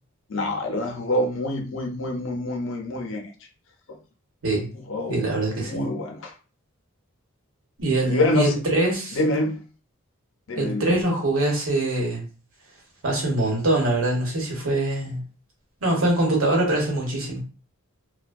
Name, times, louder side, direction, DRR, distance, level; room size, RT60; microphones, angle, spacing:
voice 1, 0.3-3.2 4.9-5.2 5.6-6.3 8.1-8.6 9.1-9.6 10.5-10.9, left 1 dB, 60° left, 0.5 m, -26 dB
voice 2, 5.1-5.9 7.8-9.2 10.6-12.2 13.0-15.2 15.8-17.4, right 1 dB, 75° right, 1.0 m, -23 dB
2.6 x 2.1 x 2.4 m
head